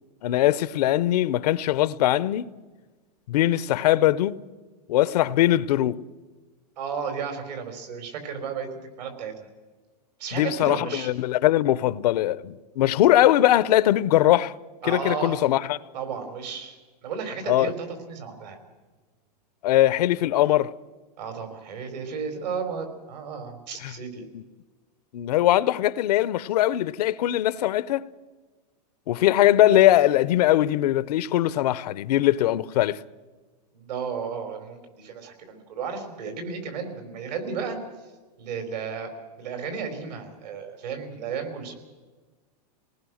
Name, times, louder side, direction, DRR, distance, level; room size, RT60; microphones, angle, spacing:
voice 1, 0.2-2.5 3.3-4.4 4.9-6.0 10.3-14.6 14.8-15.8 17.5-17.7 19.6-20.7 23.8-23.9 24.3-24.4 25.1-28.1 29.1-33.0, left 13 dB, 70° left, 0.7 m, -21 dB
voice 2, 6.8-8.7 9.0-9.3 10.2-11.1 14.8-15.4 15.9-18.6 21.2-24.2 33.7-37.8 38.4-39.1 39.4-41.7, right 6 dB, 80° right, 4.9 m, -33 dB
27.5 x 19.0 x 6.4 m
supercardioid pair, 140°, 21 cm